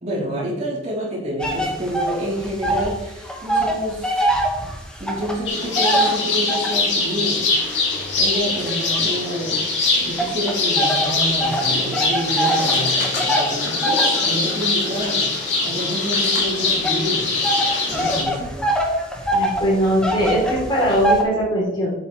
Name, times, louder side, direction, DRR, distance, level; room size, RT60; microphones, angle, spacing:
voice 1, 0.0-4.3 5.0-7.9 8.2-9.6 10.0-17.4 17.9-18.5, equal, 40° right, -5 dB, 3.3 m, -28 dB
sound 1, 1.4-3.0 3.2-6.9 7.5-9.6 10.2-21.2, right 1 dB, 5° left, 1.5 m, -24 dB
sound 2, 5.5-18.2, left 3 dB, 75° left, 3.0 m, -22 dB
voice 2, 19.3-21.9, right 1 dB, 25° left, -5 dB, 3.3 m, -20 dB
9.4 x 8.2 x 3.2 m, 0.95 s
head